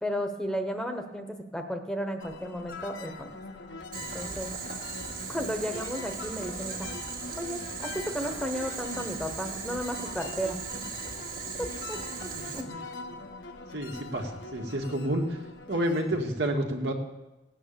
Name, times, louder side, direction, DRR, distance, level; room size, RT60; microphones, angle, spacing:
voice 1, 0.0-3.3 4.1-4.5 5.3-6.9 7.4-10.6 11.6-12.3 12.5-12.6, equal, 5° left, 5 dB, 1.1 m, -34 dB
sound 1, 2.2-16.2, left 3 dB, 85° left, 1.3 m, -42 dB
Boiling, 3.9-12.6, right 5 dB, 50° right, 2.0 m, -38 dB
voice 2, 13.7-15.2 15.7-16.9, right 1 dB, 70° right, 2 dB, 2.0 m, -29 dB
17.0 x 8.9 x 6.9 m, 1.0 s
head